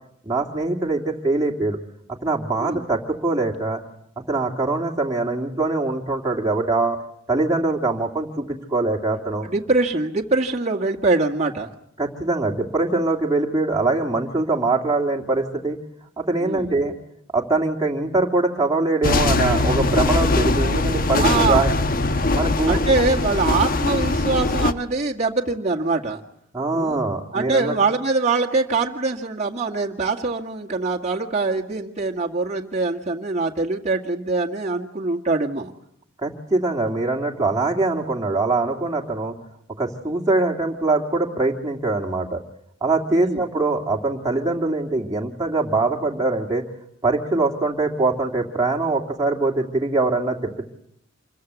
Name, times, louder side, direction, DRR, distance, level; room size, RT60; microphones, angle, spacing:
voice 1, 0.2-1.8 2.2-3.8 4.3-7.0 7.3-9.5 12.0-15.8 16.2-16.9 17.3-21.7 22.3-22.8 26.5-27.8 36.2-39.4 39.8-42.4 42.8-46.6 47.0-50.7, right 3 dB, 15° right, -1 dB, 2.7 m, -23 dB
voice 2, 9.4-11.7 16.4-16.7 21.2-21.7 22.7-26.2 26.7-35.7 43.1-43.4, right 3 dB, 35° right, 0 dB, 2.0 m, -23 dB
sound 1, 19.0-24.7, left 2 dB, 45° left, 1.2 m, -21 dB
27.0 x 22.5 x 8.3 m, 0.71 s
head